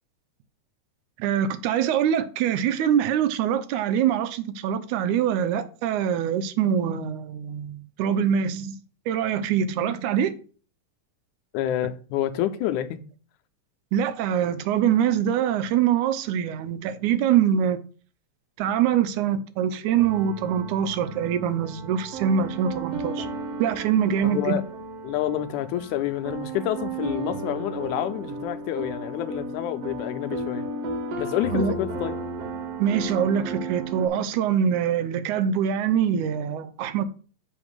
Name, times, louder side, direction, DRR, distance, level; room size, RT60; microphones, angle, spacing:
voice 1, 1.2-8.8 9.1-10.3 13.9-17.8 18.6-23.3 23.6-24.6 31.5-31.8 32.8-37.0, right 8 dB, 85° right, 2.1 m, -24 dB
voice 2, 11.5-13.0 24.2-24.6 25.0-30.6 31.2-32.1, left 12 dB, 80° left, 2.1 m, -28 dB
sound 1, 19.9-34.1, right 2 dB, 65° right, 1.9 m, -34 dB
7.3 x 3.9 x 6.1 m
omnidirectional pair, 3.5 m